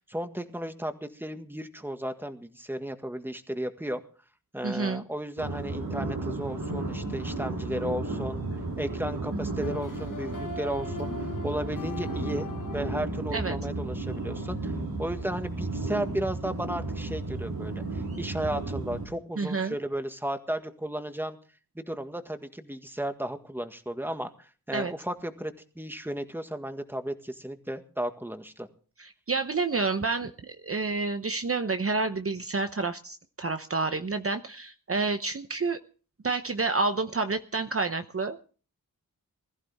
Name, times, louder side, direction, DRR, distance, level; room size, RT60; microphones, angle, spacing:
voice 1, 0.0-4.0 4.5-8.4 8.8-11.1 11.4-12.5 12.7-14.7 15.0-21.4 21.8-28.7, right 1 dB, 5° right, 7 dB, 1.8 m, -34 dB
voice 2, 4.6-5.0 13.3-13.6 19.4-19.7 24.7-24.9 29.0-35.8 36.2-38.5, right 3 dB, 40° right, 8 dB, 0.9 m, -29 dB
sound 1, 5.4-19.1, right 2 dB, 85° right, 4.2 m, -33 dB
sound 2, 6.6-13.0, left 3 dB, 60° left, 1.2 m, -42 dB
21.0 x 14.5 x 3.6 m, 0.40 s
wide cardioid pair, 80°, 35 cm